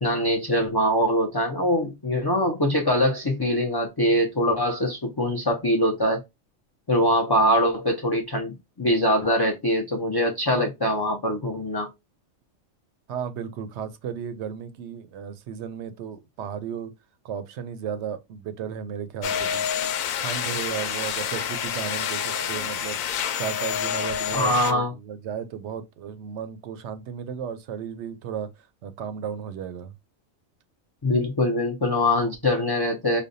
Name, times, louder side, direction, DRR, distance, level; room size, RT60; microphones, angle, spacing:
voice 1, 0.0-6.2 6.9-11.9 24.3-24.9 31.0-33.2, left 1 dB, 35° left, 0.3 m, -23 dB
voice 2, 13.1-16.9 17.2-19.6 20.2-23.0 23.4-28.5 28.8-29.9, right 8 dB, 65° right, 0.8 m, -34 dB
sound 1, 19.2-24.7, left 8 dB, 85° left, 1.0 m, -28 dB
5.1 x 2.2 x 2.5 m
omnidirectional pair, 1.4 m